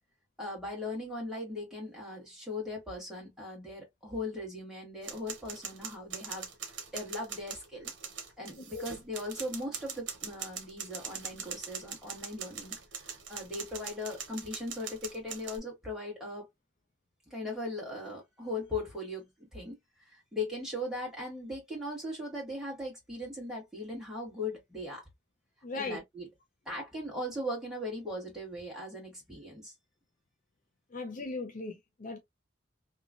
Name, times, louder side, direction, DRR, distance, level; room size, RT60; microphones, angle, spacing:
voice 1, 0.4-6.5 6.9-7.9 8.4-16.5 17.3-25.1 25.7-26.3 26.6-29.7, left 1 dB, 5° right, 1.4 m, -39 dB
sound 1, 5.0-15.6, right 7 dB, 75° right, 0.8 m, -42 dB
voice 2, 25.6-26.0 30.9-32.2, left 3 dB, 45° left, 0.5 m, -38 dB
2.9 x 2.3 x 2.4 m
head